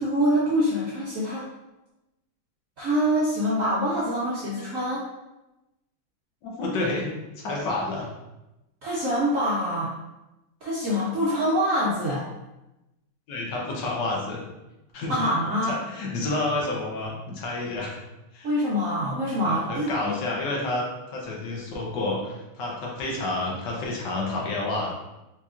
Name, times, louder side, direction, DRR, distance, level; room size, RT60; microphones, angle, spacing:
voice 1, 0.0-1.4 2.8-5.1 8.8-9.9 10.6-12.3 15.1-15.8 18.4-20.2, equal, 85° right, -7 dB, 0.7 m, -25 dB
voice 2, 6.4-7.1 7.4-8.1 13.3-14.5 14.9-15.2 15.6-18.0 18.3-18.5 19.4-20.9 21.1-24.9, left 2 dB, 65° left, -2 dB, 1.3 m, -29 dB
4.1 x 3.0 x 2.4 m, 0.96 s
omnidirectional pair, 2.3 m